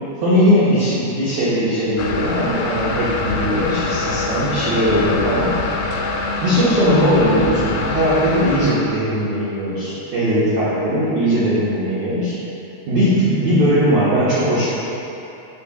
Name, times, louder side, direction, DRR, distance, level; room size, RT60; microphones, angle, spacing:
voice 1, 0.2-5.6 6.4-12.4 12.9-14.7, equal, 70° right, -10 dB, 1.8 m, -19 dB
sound 1, 2.0-8.7, left 3 dB, 90° left, 3.4 m, -24 dB
11.5 x 3.9 x 6.1 m, 3.0 s
omnidirectional pair, 5.8 m